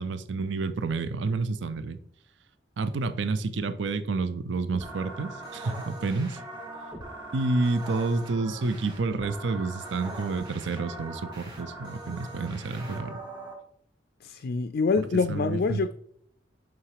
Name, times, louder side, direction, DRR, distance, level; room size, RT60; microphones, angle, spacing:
voice 1, 0.0-2.0 2.8-6.4 7.3-13.1 15.3-15.8, right 3 dB, 65° right, 0.5 m, -29 dB
sound 1, 4.7-13.5, right 2 dB, 25° right, 2.2 m, -41 dB
voice 2, 14.2-15.9, left 4 dB, 55° left, 0.4 m, -26 dB
6.0 x 5.9 x 4.8 m
head